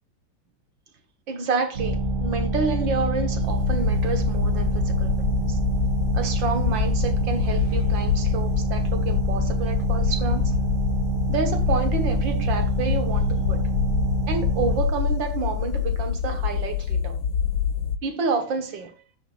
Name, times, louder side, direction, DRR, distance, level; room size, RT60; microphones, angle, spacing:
voice 1, 1.3-5.1 5.5-5.6 6.1-10.5 11.3-13.6 14.3-17.2 18.0-18.9, right 4 dB, 70° right, 2.2 m, -29 dB
sound 1, 1.7-14.8, right 1 dB, 40° right, 2.5 m, -26 dB
sound 2, 3.4-18.0, left 6 dB, 75° left, 1.5 m, -26 dB
13.5 x 5.0 x 2.6 m
omnidirectional pair, 2.1 m